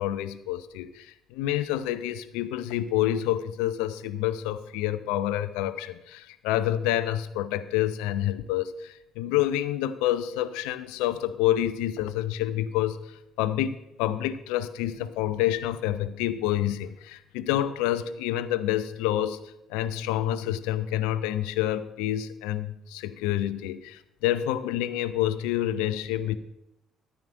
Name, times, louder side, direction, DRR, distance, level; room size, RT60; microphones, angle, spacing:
voice 1, 0.0-13.0 13.4-19.4 19.7-26.4, left 12 dB, 70° left, 13 dB, 0.5 m, -28 dB
13.5 x 10.0 x 2.6 m, 0.85 s
figure-of-eight pair, 50°, 0 cm